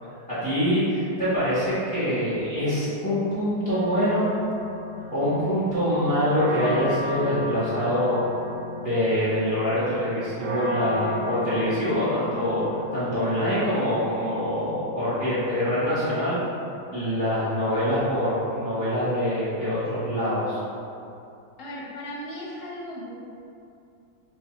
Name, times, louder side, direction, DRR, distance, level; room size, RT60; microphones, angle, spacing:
voice 1, 0.3-4.3 5.1-8.2 8.7-12.6 12.9-16.4 16.9-20.6, equal, 10° left, -14 dB, 0.5 m, -25 dB
sound 1, 3.7-13.3, left 1 dB, 85° right, 1.3 m, -34 dB
voice 2, 21.6-23.1, equal, 60° left, -5 dB, 0.8 m, -36 dB
3.3 x 2.0 x 4.1 m, 2.6 s
omnidirectional pair, 2.0 m